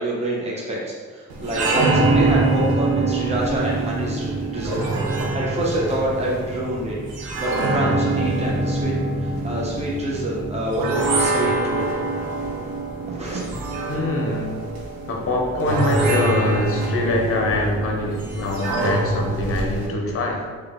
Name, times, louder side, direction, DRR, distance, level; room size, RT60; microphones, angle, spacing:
voice 1, 0.0-4.8 5.1-7.0 7.3-12.0 13.0-13.6, right 1 dB, 20° right, -5 dB, 0.9 m, -27 dB
sound 1, 1.3-19.9, right 2 dB, 85° right, 0.6 m, -24 dB
voice 2, 13.9-14.7 15.1-20.5, left 2 dB, 40° left, 0 dB, 0.7 m, -24 dB
3.2 x 2.2 x 3.5 m, 1.5 s
hypercardioid pair, 40°, 35 cm